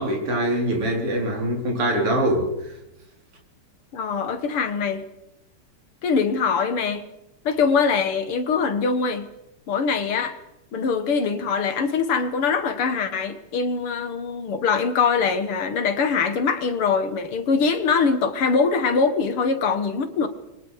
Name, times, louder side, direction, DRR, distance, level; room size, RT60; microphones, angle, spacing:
voice 1, 0.0-2.7, right 1 dB, 90° right, 4.9 m, -23 dB
voice 2, 3.9-5.0 6.0-7.0 7.4-9.3 9.7-10.4 10.7-20.3, left 5 dB, 80° left, 2.6 m, -23 dB
29.0 x 24.0 x 5.0 m
omnidirectional pair, 2.4 m